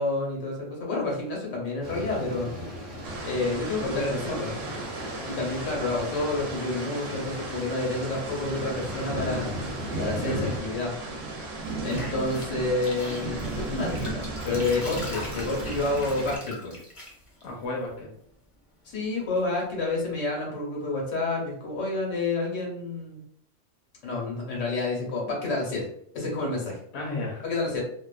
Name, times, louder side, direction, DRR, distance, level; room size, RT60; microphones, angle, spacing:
voice 1, 0.0-2.5 3.2-4.5 5.2-9.6 10.0-10.9 11.8-16.8 18.8-23.2 24.0-25.9 26.1-26.8 27.4-27.8, left 2 dB, 85° left, -2 dB, 1.3 m, -29 dB
sound 1, 1.8-10.6, equal, 45° right, 1.1 m, -36 dB
sound 2, 3.0-16.4, right 2 dB, 85° right, 1.1 m, -36 dB
voice 2, 3.8-4.5 10.2-10.5 17.4-18.1 26.9-27.4, left 2 dB, 70° left, -2 dB, 0.9 m, -32 dB
sound 3, 11.6-17.9 18.8-19.6, left 1 dB, 35° left, 0.6 m, -42 dB
2.8 x 2.0 x 2.3 m, 0.68 s
omnidirectional pair, 1.3 m